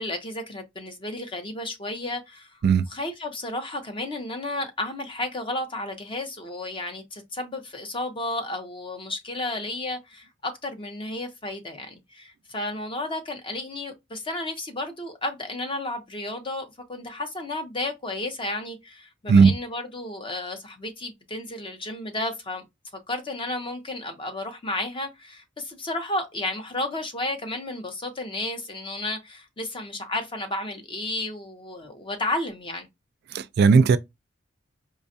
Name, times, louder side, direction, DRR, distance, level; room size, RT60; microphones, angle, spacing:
voice 1, 0.0-2.6 2.9-22.6 23.1-32.9, left 2 dB, 25° left, 0.7 m, -32 dB
voice 2, 33.3-34.0, right 5 dB, 55° right, 0.3 m, -16 dB
4.9 x 2.3 x 2.6 m
head